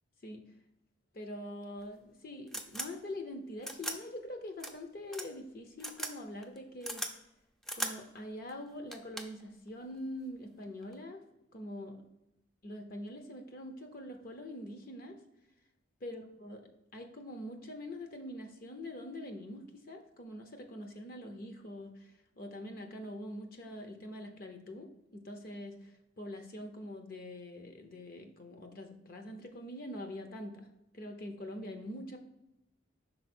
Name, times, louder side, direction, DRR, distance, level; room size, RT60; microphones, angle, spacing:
voice 1, 1.1-7.0 7.7-11.2 11.5-12.0 12.6-15.2 16.0-30.7 30.9-32.2, left 1 dB, 50° left, 5 dB, 0.7 m, -44 dB
sound 1, 1.8-1.9 2.5-2.9 3.6-4.0 4.6-4.7 5.1-5.3 5.8-6.1 6.4-7.1 7.6-7.9 8.5-8.6 8.9-9.4 10.6-10.9, right 1 dB, ahead, 0.4 m, -38 dB
5.5 x 4.1 x 4.2 m, 0.89 s
head